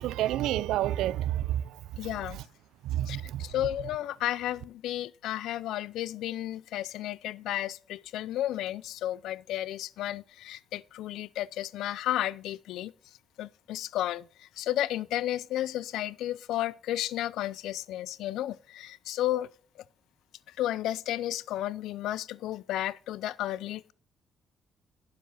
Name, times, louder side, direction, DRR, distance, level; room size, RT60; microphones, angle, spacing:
voice 1, 0.0-1.7 2.8-3.4, right 13 dB, 90° right, 0.4 m, -29 dB
voice 2, 2.0-2.4 3.1-12.9 13.4-19.5 20.6-23.9, left 13 dB, 85° left, 0.4 m, -33 dB
9.4 x 7.4 x 5.6 m
cardioid pair, 90°, 0 cm